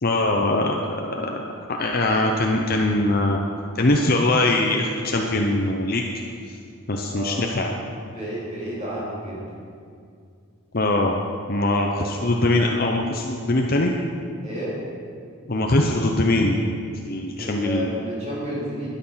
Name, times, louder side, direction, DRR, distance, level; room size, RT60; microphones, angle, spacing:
voice 1, 0.0-3.4 3.7-6.0 6.5-6.6 6.9-7.7 10.7-11.2 11.5-13.9 15.5-16.6 17.1-17.9, left 2 dB, 40° left, 1 dB, 0.8 m, -22 dB
voice 2, 7.1-7.4 8.1-9.5 11.6-12.2 14.4-14.8 17.4-18.9, equal, 30° right, -7 dB, 3.4 m, -31 dB
12.5 x 10.0 x 5.8 m, 2.3 s
head